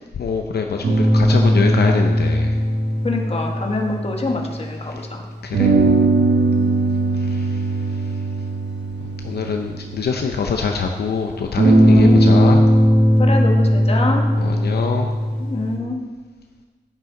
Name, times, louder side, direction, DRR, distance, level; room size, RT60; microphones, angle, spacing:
voice 1, 0.2-2.6 4.9-5.0 5.4-5.7 7.1-7.6 7.9-8.0 9.2-12.6 14.4-15.1, left 5 dB, 65° left, 3 dB, 0.6 m, -24 dB
sound 1, 0.8-4.8 5.5-10.6 11.6-15.8, right 1 dB, 85° right, 1.4 m, -18 dB
voice 2, 3.0-5.2 11.9-12.2 13.2-14.2 15.4-16.0, left 3 dB, 35° left, 1 dB, 1.4 m, -25 dB
9.8 x 9.5 x 3.8 m, 1.4 s
wide cardioid pair, 115°, 18 cm